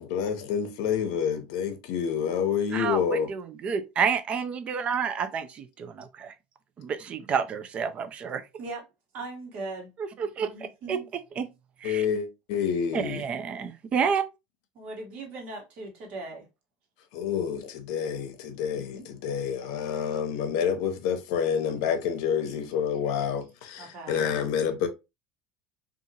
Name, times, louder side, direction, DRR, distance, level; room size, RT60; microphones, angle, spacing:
voice 1, 0.0-3.3 11.8-13.2 17.1-24.9, left 7 dB, 75° left, 0.6 m, -28 dB
voice 2, 2.7-6.3 6.8-8.4 10.0-10.5 10.9-11.0 11.4-11.5 11.8-12.0 12.9-14.2, right 6 dB, 40° right, 0.4 m, -29 dB
voice 3, 9.1-11.1 14.7-16.5 18.7-19.0 23.8-24.5, right 3 dB, 55° right, 1.1 m, -40 dB
2.7 x 2.4 x 2.7 m
supercardioid pair, 110°, 3 cm